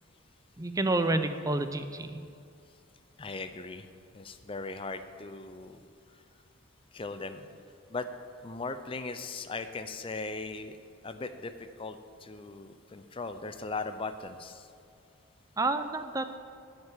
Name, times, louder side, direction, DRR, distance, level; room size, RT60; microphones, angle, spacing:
voice 1, 0.6-2.2 15.6-16.4, right 2 dB, 15° right, 9 dB, 0.5 m, -29 dB
voice 2, 3.2-3.9 4.1-5.8 6.9-7.4 7.9-8.0 8.4-10.7 11.0-11.5 11.8-14.7, left 3 dB, 25° left, 10 dB, 0.5 m, -38 dB
9.2 x 6.6 x 8.8 m, 2.3 s
head